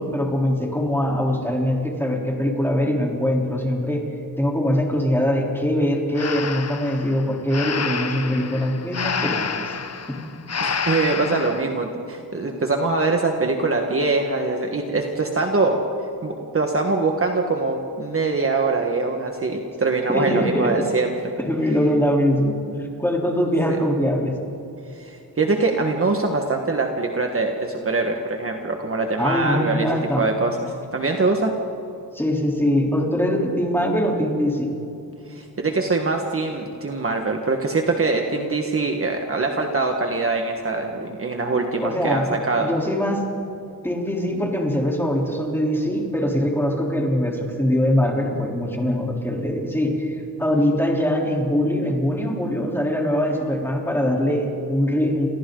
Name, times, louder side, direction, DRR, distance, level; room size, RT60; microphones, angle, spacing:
voice 1, 0.0-4.0 4.4-9.7 11.1-11.2 20.1-20.9 21.4-22.5 23.0-24.3 29.2-30.3 32.1-34.7 41.8-42.3 42.6-43.2 43.8-55.3, equal, 5° left, -1 dB, 3.6 m, -22 dB
Breathing, 6.1-11.7, left 6 dB, 40° left, 1.0 m, -28 dB
voice 2, 10.6-15.8 16.2-21.1 23.7-23.8 25.0-29.9 30.2-31.5 35.3-42.7, right 3 dB, 35° right, 2 dB, 1.6 m, -23 dB
30.0 x 27.0 x 3.9 m, 2.7 s
wide cardioid pair, 150°, 40 cm